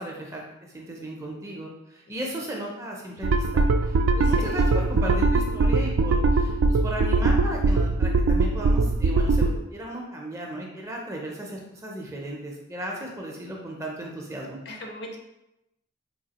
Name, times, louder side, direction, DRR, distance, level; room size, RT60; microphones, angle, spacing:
voice 1, 0.0-14.6, right 1 dB, 15° right, -1 dB, 0.4 m, -36 dB
sound 1, 3.2-9.6, right 3 dB, 90° right, 0.3 m, -21 dB
voice 2, 4.3-4.6 14.7-15.2, left 1 dB, 55° left, 1 dB, 0.6 m, -38 dB
3.9 x 2.7 x 2.8 m, 0.90 s
head